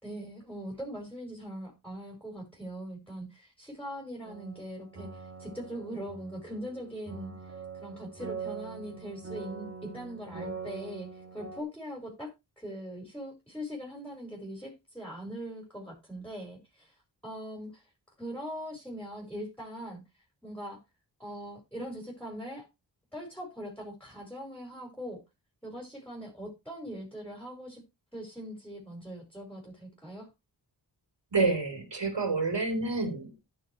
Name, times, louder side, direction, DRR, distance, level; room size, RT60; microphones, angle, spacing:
voice 1, 0.0-12.3 12.6-17.0 17.2-17.9 18.2-20.8 21.2-22.7 23.1-25.2 25.6-27.8 28.1-30.3, equal, 5° left, 5.0 m, -41 dB
sound 1, 4.2-11.6, right 5 dB, 35° right, 2.4 m, -43 dB
voice 2, 31.3-33.4, right 3 dB, 80° right, 3.8 m, -28 dB
15.5 x 6.5 x 3.1 m
wide cardioid pair, 85°, 42 cm